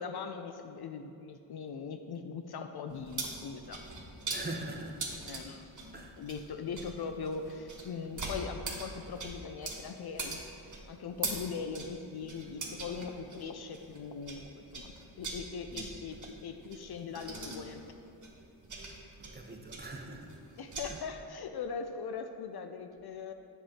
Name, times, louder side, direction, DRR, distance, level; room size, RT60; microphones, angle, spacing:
voice 1, 0.0-3.9 4.3-4.5 5.2-17.8 19.5-19.6 20.6-23.3, left 5 dB, 50° left, 7 dB, 0.6 m, -41 dB
sound 1, 2.9-14.4 14.7-20.9, right 3 dB, 35° right, 1.7 m, -42 dB
voice 2, 4.3-5.0 5.9-6.2 15.7-15.9 19.2-20.3 20.9-21.0, right 2 dB, 20° right, 2 dB, 1.1 m, -42 dB
7.5 x 6.7 x 4.3 m, 2.6 s
hypercardioid pair, 40°, 50 cm